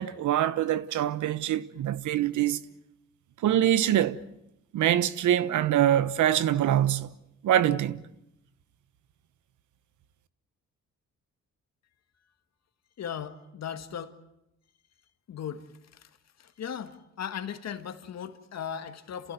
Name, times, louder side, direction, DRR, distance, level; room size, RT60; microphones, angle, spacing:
voice 1, 0.0-2.6 3.4-4.2 4.7-7.1 7.4-8.0, right 11 dB, 75° right, 1.1 m, -24 dB
voice 2, 13.0-14.2 15.3-16.1 16.4-19.3, left 8 dB, 60° left, 2.0 m, -37 dB
28.0 x 16.0 x 9.4 m
cardioid pair, 90°, 30 cm